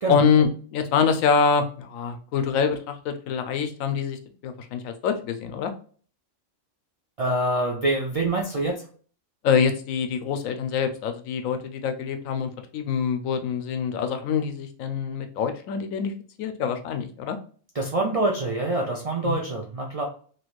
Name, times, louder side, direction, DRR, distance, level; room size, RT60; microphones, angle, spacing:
voice 1, 0.1-5.7 9.4-16.1 16.4-17.4 19.2-19.4, left 6 dB, 90° left, 7 dB, 1.0 m, -25 dB
voice 2, 7.2-8.8 17.7-20.0, right 2 dB, 60° right, -1 dB, 0.3 m, -25 dB
3.1 x 2.8 x 2.4 m, 0.43 s
omnidirectional pair, 1.3 m